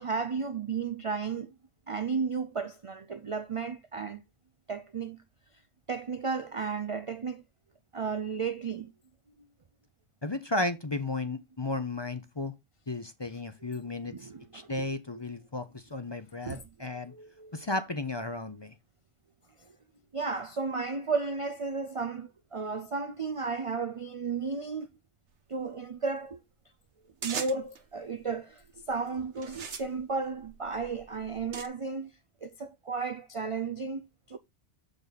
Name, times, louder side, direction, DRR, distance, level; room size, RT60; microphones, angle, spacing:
voice 1, 0.0-1.5 1.9-4.2 4.7-5.2 5.9-7.4 7.9-8.9 13.6-14.9 16.4-17.6 19.6-19.7 20.1-24.9 25.5-26.4 27.2-32.1 32.4-34.4, right 4 dB, 50° right, 0.4 m, -34 dB
voice 2, 10.2-12.5 12.9-14.1 14.5-17.1 17.5-18.7, left 2 dB, 25° left, 0.7 m, -34 dB
sound 1, 27.2-27.8 28.6-28.9 29.4-31.7, right 6 dB, 65° right, 1.3 m, -40 dB
6.9 x 6.9 x 4.0 m
omnidirectional pair, 1.3 m